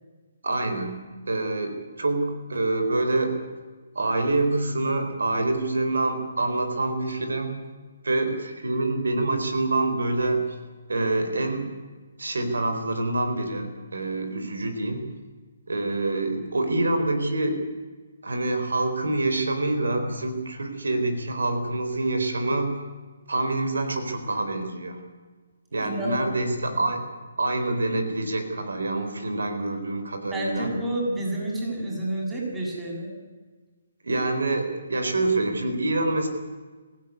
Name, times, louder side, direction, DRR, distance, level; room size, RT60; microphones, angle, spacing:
voice 1, 0.4-3.4 3.9-7.6 8.0-10.6 10.9-11.7 12.2-15.1 15.7-17.6 18.2-22.8 23.3-25.1 25.7-27.1 27.4-30.7 34.0-36.3, right 2 dB, 90° right, 7 dB, 4.2 m, -26 dB
voice 2, 25.8-26.2 30.3-33.1, right 1 dB, 10° right, -2 dB, 7.3 m, -29 dB
23.0 x 16.0 x 9.6 m, 1.4 s
hypercardioid pair, 150°, 0 cm